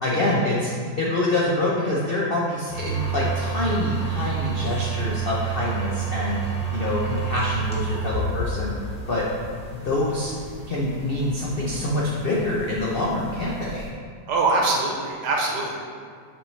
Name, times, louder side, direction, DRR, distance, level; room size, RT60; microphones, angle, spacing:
voice 1, 0.0-6.4 6.7-8.7 9.1-9.2 9.8-10.3 10.7-13.9, left 2 dB, 80° left, -5 dB, 0.5 m, -25 dB
sound 1, 2.7-13.9, right 6 dB, 5° left, 0.8 m, -30 dB
voice 2, 14.3-15.8, right 3 dB, 65° right, -1 dB, 1.5 m, -23 dB
6.4 x 5.8 x 3.2 m, 2.1 s
omnidirectional pair, 2.1 m